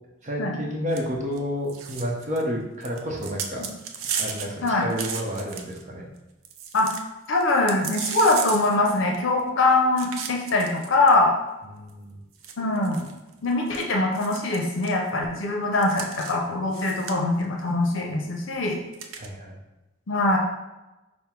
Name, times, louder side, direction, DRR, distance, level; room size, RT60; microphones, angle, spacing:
voice 1, 0.2-3.7 4.2-6.1 11.6-12.2 19.2-19.6, equal, 35° right, -1 dB, 0.7 m, -30 dB
sound 1, 0.9-1.0 1.3-1.4 1.7-2.4 2.8-5.8 6.2-6.3 6.4-7.0 7.4-9.4 10.0-11.1 11.9-12.0 12.4-13.8 14.1-15.0 15.8-16.4 16.7-17.4 18.9-19.3, right 7 dB, 85° right, 0.5 m, -34 dB
voice 2, 7.3-11.3 12.6-13.1 13.4-18.8 20.1-20.4, left 2 dB, 65° left, 1 dB, 0.6 m, -22 dB
5.6 x 2.0 x 4.4 m, 1.0 s
head